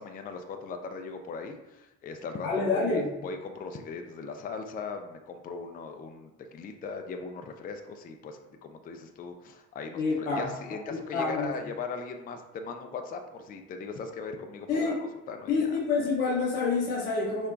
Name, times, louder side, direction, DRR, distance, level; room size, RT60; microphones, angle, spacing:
voice 1, 0.0-14.9 15.3-15.8, left 4 dB, 25° left, 5 dB, 0.4 m, -39 dB
voice 2, 2.4-3.1 9.9-10.5 10.9-11.6 14.7-15.0 15.5-17.5, left 4 dB, 90° left, -6 dB, 0.9 m, -27 dB
4.9 x 2.1 x 2.4 m, 0.96 s
hypercardioid pair, 50°, 39 cm